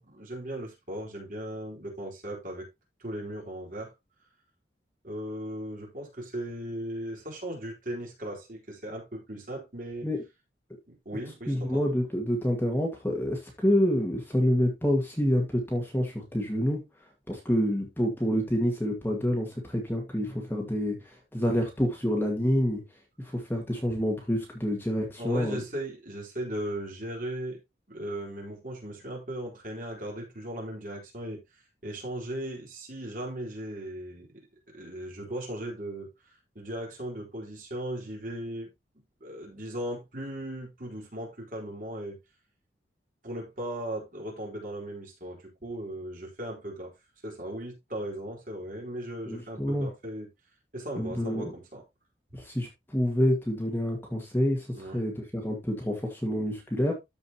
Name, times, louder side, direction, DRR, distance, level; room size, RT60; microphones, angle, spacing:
voice 1, 0.0-2.7 3.0-3.9 5.0-10.1 10.9-11.8 25.2-27.6 27.9-31.4 31.8-34.4 34.7-36.1 36.5-38.7 39.2-42.2 43.2-46.9 47.2-50.3 50.7-51.8 54.8-55.0, right 1 dB, 45° right, 4.3 m, -37 dB
voice 2, 11.5-16.8 17.3-22.8 23.2-25.6 49.3-49.9 51.0-51.5 52.3-56.9, equal, 10° left, 2.0 m, -27 dB
13.5 x 5.3 x 2.9 m
head